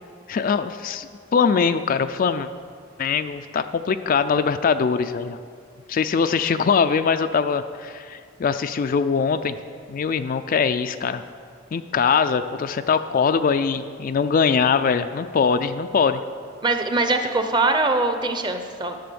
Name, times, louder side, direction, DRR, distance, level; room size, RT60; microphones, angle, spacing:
voice 1, 0.3-2.5 3.0-5.4 5.9-9.6 9.9-11.2 11.7-16.2, left 6 dB, 45° left, 10 dB, 0.3 m, -22 dB
voice 2, 16.6-19.0, right 2 dB, 20° right, 6 dB, 0.7 m, -22 dB
11.5 x 6.7 x 6.9 m, 2.1 s
head